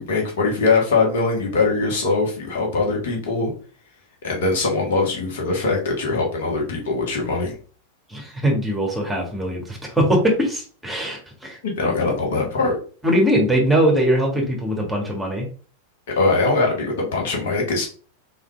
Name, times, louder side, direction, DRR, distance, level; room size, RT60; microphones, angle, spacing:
voice 1, 0.0-3.5 4.2-7.6 11.6-12.8 16.2-17.9, left 3 dB, 55° left, 0 dB, 1.4 m, -21 dB
voice 2, 8.1-11.6 13.0-15.4, equal, 5° right, -1 dB, 1.6 m, -21 dB
4.2 x 3.7 x 3.3 m, 0.40 s
figure-of-eight pair, 90°, 0 cm